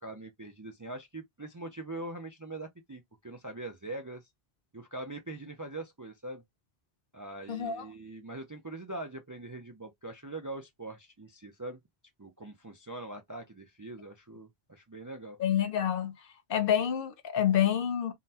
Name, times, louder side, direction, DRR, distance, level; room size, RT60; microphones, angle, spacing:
voice 1, 0.0-4.3 4.7-6.4 7.1-11.8 12.2-15.4, right 2 dB, 30° right, 0.3 m, -42 dB
voice 2, 7.5-7.8 15.4-16.1 16.5-18.1, left 9 dB, 65° left, 0.8 m, -27 dB
3.8 x 2.1 x 2.7 m
omnidirectional pair, 1.0 m